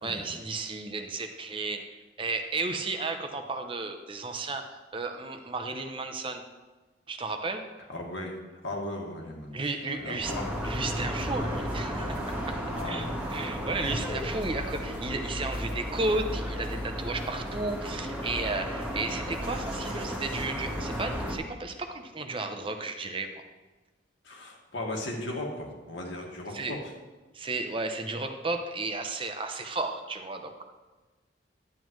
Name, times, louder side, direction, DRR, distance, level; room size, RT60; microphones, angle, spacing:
voice 1, 0.0-6.4 7.1-7.6 9.5-10.3 10.6-12.6 12.8-23.4 26.5-26.8 27.3-30.6, right 3 dB, 25° right, 6 dB, 0.6 m, -33 dB
voice 2, 7.9-8.3 8.6-9.6 9.9-10.5 12.7-13.1 13.6-13.8 24.2-26.8, left 1 dB, 80° left, -1 dB, 1.8 m, -37 dB
sound 1, 10.2-21.4, equal, 10° right, 1.4 m, -33 dB
10.5 x 9.2 x 3.1 m, 1.2 s
head